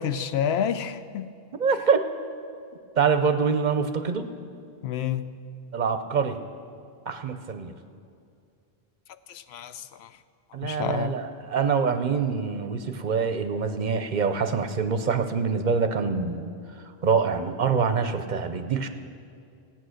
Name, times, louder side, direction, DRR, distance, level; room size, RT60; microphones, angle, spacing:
voice 1, 0.0-1.3 4.8-5.3 9.3-10.1 10.6-11.2, left 8 dB, 80° left, 12 dB, 0.8 m, -29 dB
voice 2, 1.6-2.0 3.0-4.3 5.7-6.4 7.1-7.7 10.5-16.5 17.0-18.9, right 5 dB, 50° right, 9 dB, 0.7 m, -25 dB
15.5 x 9.1 x 6.4 m, 2.4 s
omnidirectional pair, 1.1 m